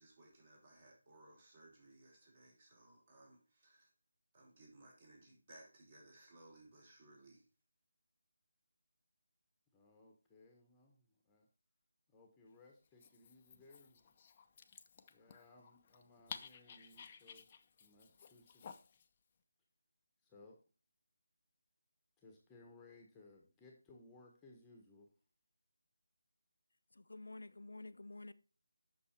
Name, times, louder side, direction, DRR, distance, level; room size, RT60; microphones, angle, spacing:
voice 1, 0.0-3.9 4.3-7.4, right 2 dB, 40° right, 5.1 m, -62 dB
voice 2, 9.7-11.5 12.1-14.1 15.1-17.5 17.8-18.8 20.2-20.6 22.2-25.1, left 2 dB, 10° left, 1.3 m, -62 dB
Dog, 12.8-19.1, left 6 dB, 30° left, 0.7 m, -55 dB
voice 3, 26.9-28.3, left 2 dB, 70° left, 0.6 m, -50 dB
8.5 x 6.4 x 4.5 m
figure-of-eight pair, 160°, 0 cm